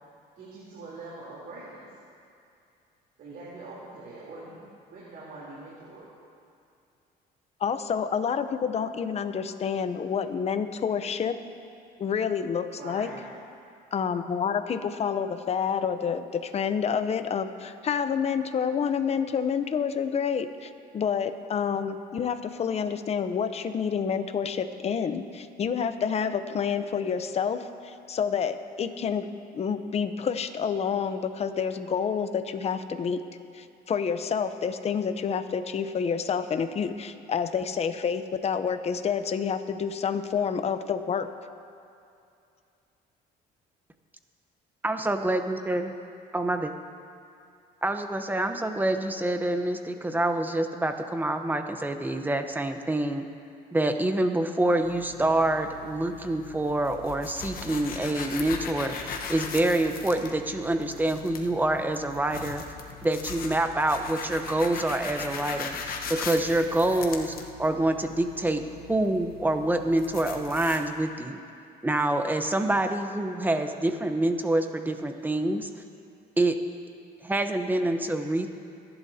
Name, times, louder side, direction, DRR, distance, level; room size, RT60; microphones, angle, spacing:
voice 1, 0.4-1.9 3.2-6.1 12.8-13.3, right 2 dB, 60° right, -8 dB, 3.6 m, -43 dB
voice 2, 7.6-11.4 12.0-13.1 13.9-29.3 29.5-33.2 33.5-41.3, left 7 dB, 40° left, 10 dB, 0.8 m, -28 dB
voice 3, 44.8-45.9 46.3-46.7 47.8-53.3 53.7-62.6 63.0-68.6 68.9-71.4 71.8-75.7 76.4-76.6 77.2-78.5, right 1 dB, 10° right, 6 dB, 0.9 m, -26 dB
sound 1, 54.8-70.8, left 5 dB, 60° left, 1.2 m, -39 dB
25.5 x 11.0 x 2.8 m, 2.5 s
cardioid pair, 110°, 17 cm